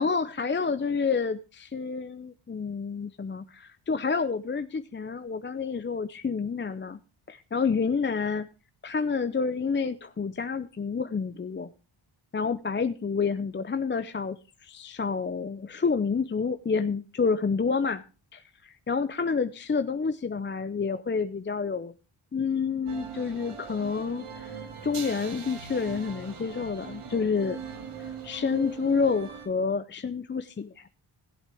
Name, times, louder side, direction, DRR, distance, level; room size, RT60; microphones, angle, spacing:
voice 1, 0.0-7.0 7.3-8.5 8.8-11.7 12.3-18.0 18.3-21.9 22.3-24.5 24.8-27.6 28.0-30.9, left 5 dB, 25° left, 10 dB, 0.6 m, -29 dB
sound 1, 22.9-29.5, right 6 dB, 80° right, 2.0 m, -41 dB
16.5 x 8.0 x 3.4 m, 0.32 s
cardioid pair, 70°, 49 cm